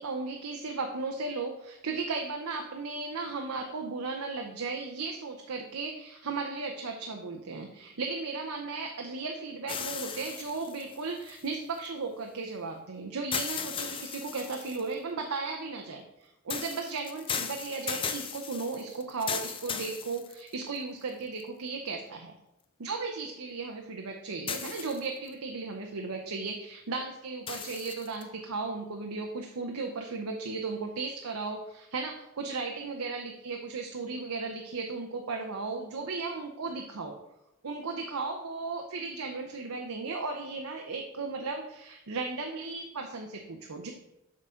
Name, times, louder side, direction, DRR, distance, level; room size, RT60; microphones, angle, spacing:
voice 1, 0.0-22.3 22.8-37.2 37.6-43.9, right 4 dB, 85° right, 2 dB, 0.7 m, -36 dB
sound 1, 9.7-11.9 13.3-14.9 16.5-20.8 21.4-21.5 24.5-25.3 27.5-28.2, left 7 dB, 25° left, 0.4 m, -37 dB
7.3 x 3.8 x 5.6 m, 0.87 s
head